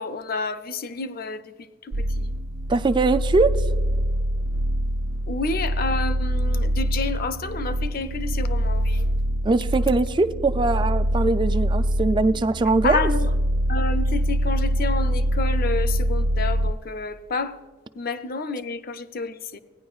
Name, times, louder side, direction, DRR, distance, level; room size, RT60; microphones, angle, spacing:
voice 1, 0.0-2.3 5.3-9.1 12.8-13.3 13.7-17.6 17.9-19.6, left 3 dB, 50° left, 0.5 m, -29 dB
sound 1, 1.9-16.7, right 1 dB, 85° right, 0.4 m, -24 dB
voice 2, 2.7-3.5 9.4-13.1, right 3 dB, 25° right, 0.3 m, -21 dB
16.5 x 10.0 x 2.4 m
head